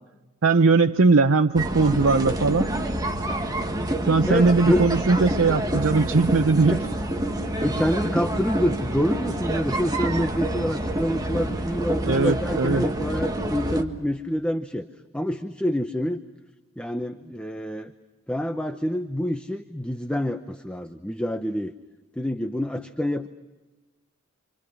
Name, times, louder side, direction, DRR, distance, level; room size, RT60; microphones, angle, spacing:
voice 1, 0.4-2.7 4.0-6.8 12.1-12.9, right 4 dB, 85° right, 6 dB, 0.8 m, -19 dB
sound 1, 1.5-13.8, right 1 dB, 20° right, 1.8 m, -27 dB
voice 2, 4.3-5.0 6.7-6.8 7.6-14.9 15.1-16.2 16.8-17.9 18.3-21.7 22.2-23.3, equal, 5° left, 7 dB, 0.8 m, -27 dB
29.0 x 27.0 x 6.2 m, 1.2 s
head